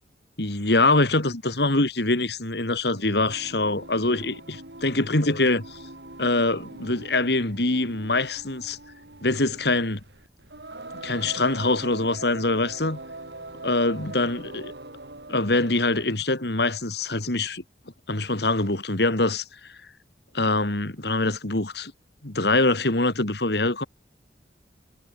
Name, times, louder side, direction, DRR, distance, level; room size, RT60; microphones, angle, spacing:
voice 1, 0.4-5.8 6.2-8.8 9.2-10.0 11.0-13.0 13.6-14.7 15.3-17.6 18.1-19.7 20.3-21.9 22.2-23.8, left 2 dB, 60° left, 2.6 m, -24 dB
Singing, 3.0-16.2, right 2 dB, 65° right, 7.7 m, -42 dB
head